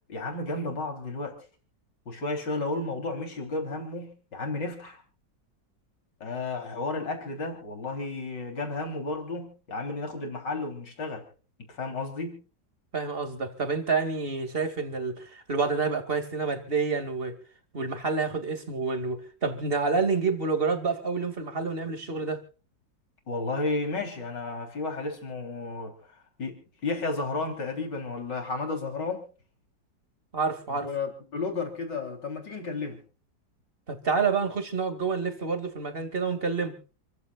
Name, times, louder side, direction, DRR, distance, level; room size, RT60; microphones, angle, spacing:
voice 1, 0.1-1.4 2.1-5.0 6.2-11.3 11.7-12.4 23.3-25.9 26.4-29.2 30.7-33.0, left 3 dB, 70° left, 4.2 m, -32 dB
voice 2, 12.9-17.4 17.7-22.4 30.3-30.9 33.9-36.8, right 4 dB, 30° right, 2.5 m, -28 dB
28.5 x 15.0 x 2.4 m
omnidirectional pair, 2.0 m